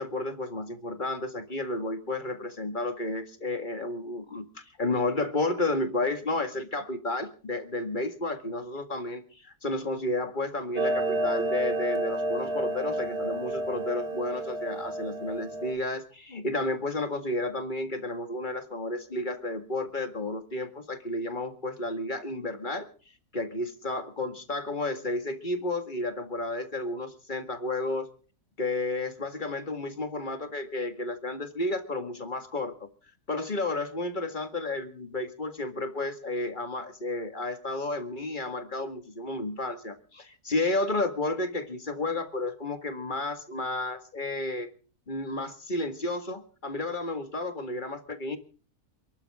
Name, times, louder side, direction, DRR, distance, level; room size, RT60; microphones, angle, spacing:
voice 1, 0.0-22.9 23.3-28.1 28.6-32.9 33.3-44.7 45.1-48.4, left 2 dB, 30° left, 8 dB, 2.0 m, -32 dB
Clock, 10.8-15.7, right 1 dB, 75° right, 2.4 m, -30 dB
29.0 x 12.0 x 3.6 m, 0.40 s
omnidirectional pair, 1.7 m